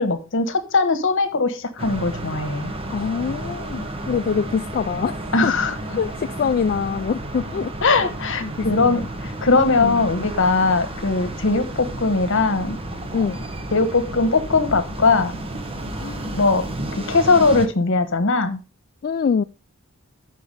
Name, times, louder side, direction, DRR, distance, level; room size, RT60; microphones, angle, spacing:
voice 1, 0.0-2.7 5.3-5.7 7.8-12.8 13.7-15.3 16.3-16.6 17.0-18.6, left 3 dB, 65° left, 1.2 m, -20 dB
sound 1, 1.8-17.7, right 1 dB, 25° right, 1.0 m, -32 dB
voice 2, 2.9-5.5 6.0-7.7 8.4-9.1 9.8-10.1 13.1-13.4 16.0-16.2 19.0-19.4, left 6 dB, 45° left, 0.3 m, -25 dB
6.7 x 6.2 x 5.3 m
head